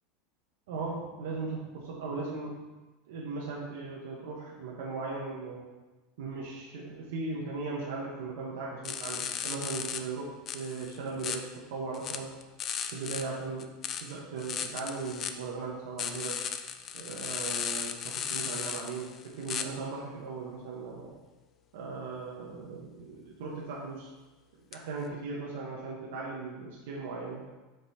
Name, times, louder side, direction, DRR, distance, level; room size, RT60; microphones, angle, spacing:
voice 1, 0.7-2.6 3.1-5.6 6.2-10.3 10.5-12.3 12.9-13.7 14.0-16.4 16.9-21.1 21.7-24.1 24.7-27.4, right 4 dB, 80° right, -3 dB, 1.1 m, -38 dB
sound 1, 8.9-10.0 10.5-11.4 11.9-13.3 13.6-15.3 16.0-19.6 24.7-24.8, left 8 dB, 25° left, 0.3 m, -36 dB
5.2 x 4.6 x 4.3 m, 1.2 s
supercardioid pair, 170°, 0 cm